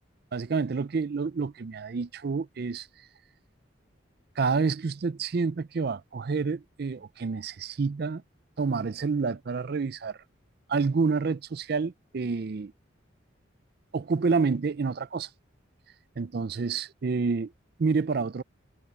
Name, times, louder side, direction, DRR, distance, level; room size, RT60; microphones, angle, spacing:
voice 1, 0.3-2.9 4.4-8.2 8.6-10.2 10.7-12.7 13.9-15.3 16.2-17.5 17.8-18.4, right 4 dB, 50° right, 0.4 m, -28 dB
head